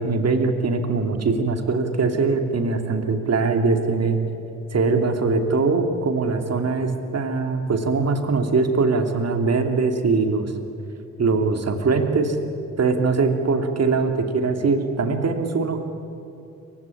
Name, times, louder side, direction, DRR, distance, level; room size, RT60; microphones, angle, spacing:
voice 1, 0.0-4.2 4.7-10.5 11.2-12.4 12.8-15.8, right 4 dB, 40° right, 6 dB, 2.8 m, -22 dB
27.5 x 16.0 x 9.9 m, 2.8 s
figure-of-eight pair, 40°, 40 cm